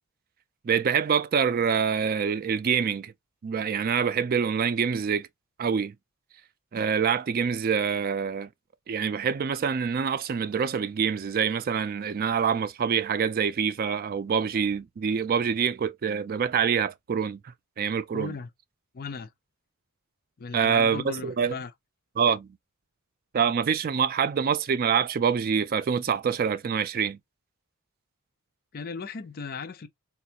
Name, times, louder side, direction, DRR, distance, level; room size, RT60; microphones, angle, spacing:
voice 1, 0.6-3.1 3.4-5.3 5.6-5.9 6.7-8.5 8.9-17.4 17.8-18.3 20.5-21.5 22.2-22.5 23.3-27.2, right 6 dB, 40° right, 0.3 m, -26 dB
voice 2, 18.1-18.5 18.9-19.3 20.4-21.7 28.7-29.9, left 4 dB, 40° left, 0.5 m, -36 dB
4.2 x 2.4 x 2.7 m
head